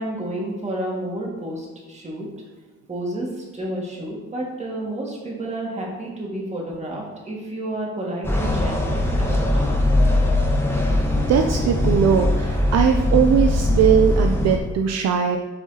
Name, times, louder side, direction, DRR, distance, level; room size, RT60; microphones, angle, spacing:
voice 1, 0.0-2.3 2.9-9.7, right 1 dB, 20° right, -3 dB, 1.9 m, -30 dB
sound 1, 8.2-14.6, left 1 dB, 10° left, 1.1 m, -20 dB
voice 2, 10.8-15.4, right 7 dB, 60° right, 4 dB, 0.5 m, -20 dB
7.4 x 4.7 x 2.8 m, 1.2 s
cardioid pair, 90°, 30 cm